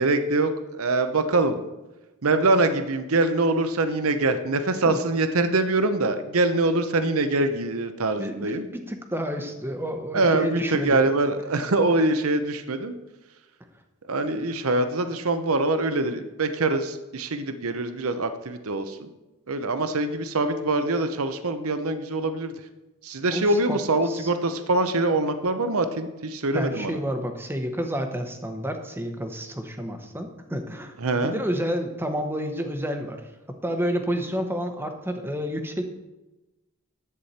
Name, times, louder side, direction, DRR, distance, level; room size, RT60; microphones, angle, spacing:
voice 1, 0.0-1.6 2.2-8.7 10.1-13.0 14.1-19.1 19.5-22.5 23.0-27.0 31.0-31.4, right 2 dB, 70° right, 9 dB, 0.8 m, -24 dB
voice 2, 8.2-11.1 23.3-24.3 26.5-33.2 33.5-35.8, equal, 10° right, 6 dB, 0.9 m, -30 dB
11.0 x 8.3 x 4.3 m, 1.0 s
head